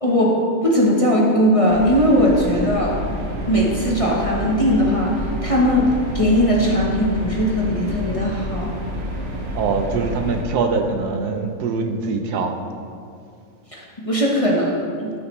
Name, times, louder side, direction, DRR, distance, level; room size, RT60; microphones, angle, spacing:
voice 1, 0.0-3.0 3.5-8.7 13.7-15.1, equal, 25° left, -3 dB, 0.9 m, -19 dB
sound 1, 1.7-10.4, equal, 60° right, 1.3 m, -29 dB
voice 2, 9.5-12.5, right 4 dB, 90° right, 5 dB, 1.3 m, -23 dB
13.5 x 6.5 x 3.1 m, 2.3 s
omnidirectional pair, 1.6 m